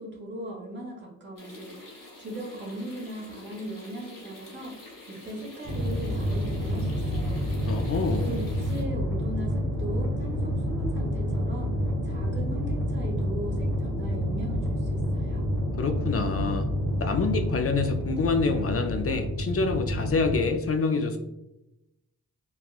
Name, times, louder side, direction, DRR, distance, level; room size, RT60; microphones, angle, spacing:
voice 1, 0.0-1.8 2.2-4.8 5.1-7.5 8.2-11.7 12.0-15.4, right 1 dB, 35° right, -2 dB, 1.1 m, -38 dB
sound 1, 1.4-8.8, left 2 dB, 70° left, 1.3 m, -47 dB
sound 2, 5.6-20.4, equal, 85° right, 0.9 m, -29 dB
voice 2, 7.7-8.4 15.8-16.7 17.0-21.2, left 4 dB, 45° left, 6 dB, 0.4 m, -26 dB
3.4 x 2.2 x 2.4 m, 0.90 s
cardioid pair, 50°, 34 cm